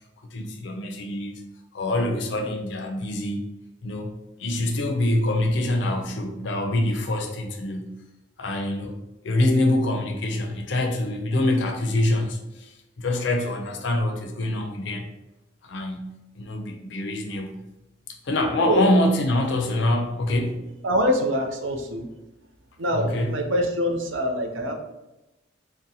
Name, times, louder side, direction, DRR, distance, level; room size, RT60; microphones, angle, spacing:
voice 1, 0.3-1.4 1.7-3.4 3.8-4.1 4.4-7.9 8.4-8.9 9.2-15.1 15.6-16.1 16.4-17.5 18.2-20.7 22.9-23.4, left 1 dB, 60° left, 3 dB, 0.5 m, -25 dB
voice 2, 20.8-22.1 22.8-24.7, equal, 70° right, 3 dB, 0.5 m, -24 dB
3.8 x 2.1 x 2.7 m, 0.97 s
head